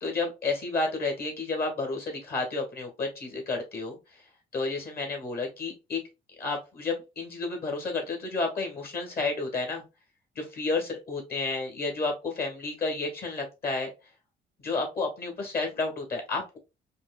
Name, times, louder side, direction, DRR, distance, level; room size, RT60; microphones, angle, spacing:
voice 1, 0.0-4.2 4.5-6.0 6.4-9.8 10.3-13.9 14.6-16.6, left 3 dB, 55° left, 3 dB, 1.4 m, -31 dB
5.1 x 2.2 x 2.2 m, 0.27 s
cardioid pair, 80°, 19 cm